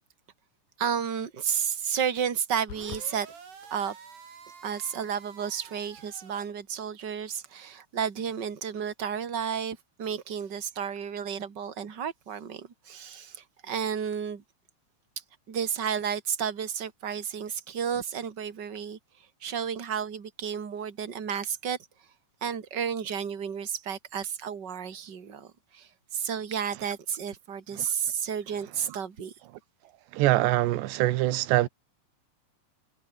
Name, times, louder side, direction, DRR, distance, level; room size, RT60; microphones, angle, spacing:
voice 1, 0.8-3.3 3.7-3.9 4.6-14.4 15.5-19.0 19.4-21.8 22.4-29.3, right 7 dB, 35° right, 1.8 m, -32 dB
sound 1, 2.7-3.1, left 13 dB, 90° left, 1.7 m, -41 dB
sound 2, 2.7-6.5, right 6 dB, 60° right, 6.7 m, -49 dB
voice 2, 30.1-31.7, right 16 dB, 75° right, 3.1 m, -24 dB
omnidirectional pair, 5.5 m